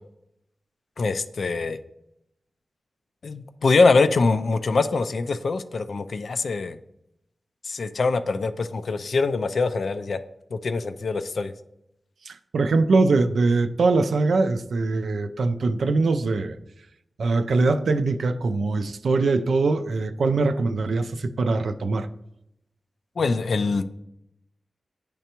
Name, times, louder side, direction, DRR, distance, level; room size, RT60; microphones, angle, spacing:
voice 1, 1.0-1.8 3.2-6.8 7.6-10.2 10.5-11.5 23.2-23.8, left 3 dB, 65° left, 0.3 m, -23 dB
voice 2, 12.3-16.6 17.2-22.1, right 3 dB, 80° right, 0.4 m, -22 dB
9.9 x 3.3 x 2.9 m
wide cardioid pair, 105°, 0 cm